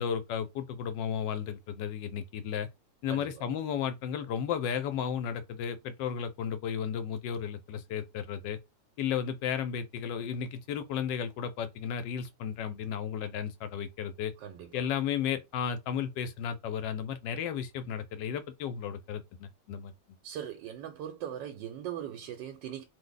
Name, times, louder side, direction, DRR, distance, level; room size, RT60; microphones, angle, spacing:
voice 1, 0.0-2.7 3.0-8.6 9.0-14.3 14.7-19.9, left 8 dB, 80° left, 1.3 m, -34 dB
voice 2, 20.2-22.8, right 10 dB, 85° right, 1.3 m, -39 dB
3.0 x 2.1 x 3.8 m
omnidirectional pair, 1.9 m